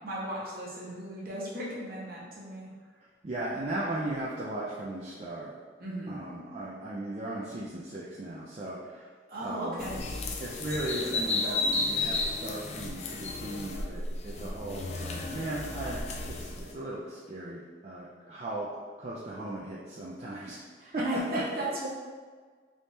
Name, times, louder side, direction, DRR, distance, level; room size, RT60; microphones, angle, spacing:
voice 1, 0.0-2.7 5.8-6.2 9.3-10.1 20.8-21.9, equal, 55° right, -5 dB, 0.9 m, -36 dB
voice 2, 3.2-5.5 6.1-9.1 9.4-9.8 10.4-16.0 16.2-18.7 19.0-20.6 20.9-21.0 21.3-21.4, right 1 dB, 35° right, -6 dB, 0.4 m, -37 dB
sound 1, 9.8-16.7, left 3 dB, 35° left, 0.3 m, -33 dB
3.5 x 3.1 x 2.7 m, 1.5 s
head